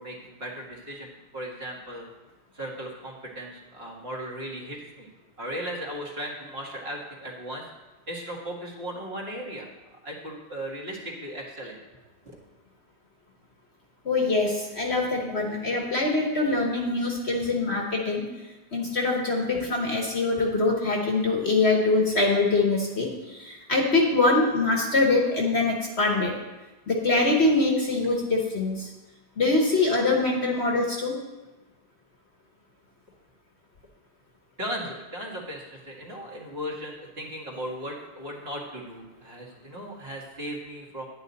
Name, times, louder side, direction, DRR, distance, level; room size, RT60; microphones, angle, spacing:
voice 1, 0.0-2.1 2.5-5.1 5.4-7.6 8.1-9.7 10.0-11.8 12.2-12.4 34.6-41.0, equal, 40° right, -3 dB, 1.9 m, -37 dB
voice 2, 14.0-18.2 18.7-26.3 26.9-28.9 29.4-31.1, left 3 dB, 45° left, 0 dB, 1.4 m, -24 dB
10.0 x 9.0 x 4.1 m, 1.1 s
omnidirectional pair, 1.7 m